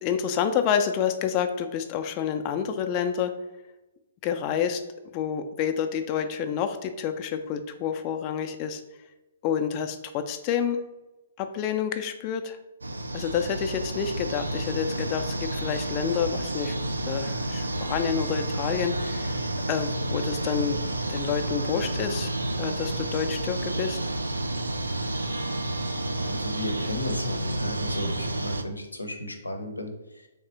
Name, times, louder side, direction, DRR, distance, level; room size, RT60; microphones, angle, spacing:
voice 1, 0.0-3.3 4.2-4.8 5.1-8.8 9.4-10.8 11.4-12.6 13.1-16.8 17.1-19.4 19.7-20.8 21.1-22.3 22.6-24.0, left 8 dB, 30° left, 7 dB, 0.3 m, -28 dB
sound 1, 12.8-28.6, right 1 dB, 85° right, 0.3 m, -30 dB
voice 2, 26.1-30.3, left 1 dB, 90° left, 5 dB, 0.6 m, -35 dB
3.5 x 3.2 x 2.9 m, 1.1 s
figure-of-eight pair, 125°, 0 cm